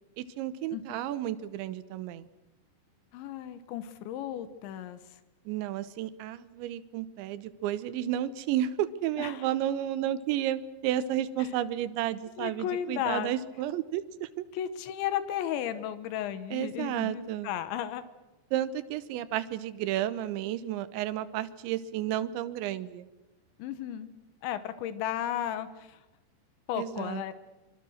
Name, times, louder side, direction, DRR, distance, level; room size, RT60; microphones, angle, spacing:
voice 1, 0.2-2.3 5.5-14.5 16.5-17.5 18.5-23.1 26.8-27.2, right 12 dB, 85° right, 13 dB, 3.3 m, -32 dB
voice 2, 3.1-5.2 9.2-9.5 11.4-11.5 12.4-13.4 14.5-18.0 23.6-24.1 24.4-26.0 26.7-27.3, left 10 dB, 90° left, 12 dB, 3.6 m, -34 dB
26.0 x 23.5 x 6.5 m, 1.0 s
omnidirectional pair, 5.2 m